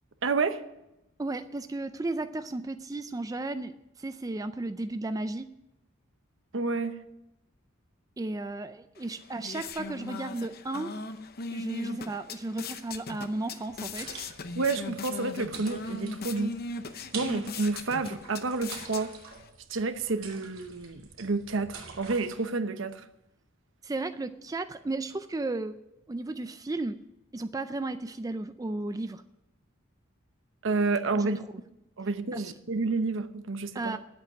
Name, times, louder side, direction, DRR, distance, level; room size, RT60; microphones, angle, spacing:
voice 1, 0.2-0.6 6.5-6.9 14.5-16.6 17.1-19.1 19.7-23.0 30.6-31.4 32.0-34.0, right 3 dB, 65° right, 10 dB, 0.9 m, -29 dB
voice 2, 1.2-5.5 8.2-11.0 11.5-14.2 23.8-25.8 26.1-27.0 27.3-29.2 31.1-31.3 32.3-32.5 33.7-34.0, right 2 dB, 15° right, 10 dB, 0.4 m, -34 dB
sound 1, 9.0-19.5, left 3 dB, 50° left, 0.8 m, -39 dB
sound 2, 13.7-22.4, right 5 dB, 90° right, 2.8 m, -46 dB
10.0 x 8.4 x 10.0 m, 0.90 s
head